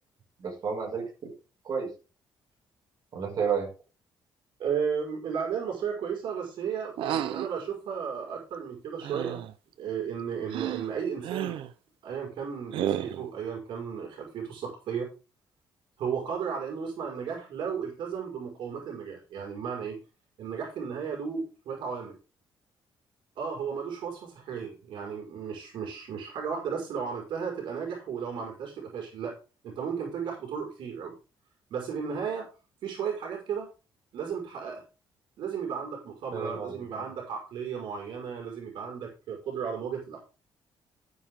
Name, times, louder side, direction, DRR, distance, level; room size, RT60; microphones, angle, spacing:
voice 1, 0.4-1.3 1.6-1.9 3.1-3.7 36.3-37.1, right 6 dB, 45° right, 0 dB, 6.0 m, -31 dB
voice 2, 4.6-9.4 9.8-11.6 12.0-15.1 16.0-20.0 20.4-22.2 23.4-29.3 29.6-31.1 31.7-32.5 32.8-33.7 34.1-34.8 35.4-40.2, right 6 dB, 70° right, 0 dB, 5.3 m, -34 dB
sound 1, 7.0-7.5 9.0-9.5 10.5-10.9 11.2-11.7 12.7-13.3, right 10 dB, 90° right, 1.0 m, -31 dB
13.0 x 9.5 x 3.8 m, 0.32 s
cardioid pair, 155°, 9 cm